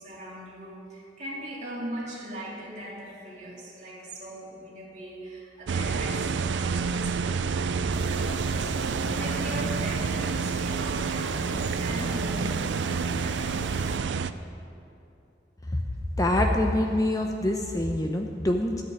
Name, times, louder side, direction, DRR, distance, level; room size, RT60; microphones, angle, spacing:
voice 1, 0.0-14.2, right 1 dB, 40° right, -5 dB, 2.8 m, -40 dB
sound 1, 5.7-14.3, right 5 dB, 85° right, 0.4 m, -28 dB
sound 2, 7.9-14.0, left 1 dB, 75° left, 1.2 m, -40 dB
voice 2, 16.2-18.8, left 1 dB, 20° left, 3 dB, 0.6 m, -25 dB
13.5 x 5.7 x 9.2 m, 2.8 s
head